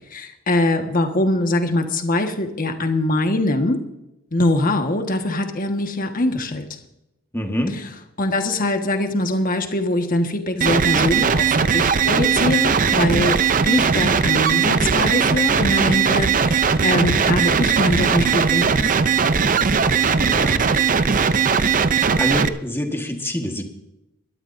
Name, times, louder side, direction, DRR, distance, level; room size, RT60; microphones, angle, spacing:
voice 1, 0.1-3.8 4.3-6.6 7.7-7.9 8.2-13.4 13.6-18.9, left 1 dB, 40° left, 5 dB, 1.5 m, -22 dB
voice 2, 7.3-7.8 20.2-20.7 21.3-21.6 22.2-23.7, left 1 dB, 10° left, 4 dB, 1.5 m, -26 dB
sound 1, 10.6-22.5, right 6 dB, 40° right, 0.6 m, -18 dB
22.0 x 12.5 x 2.7 m, 0.88 s
head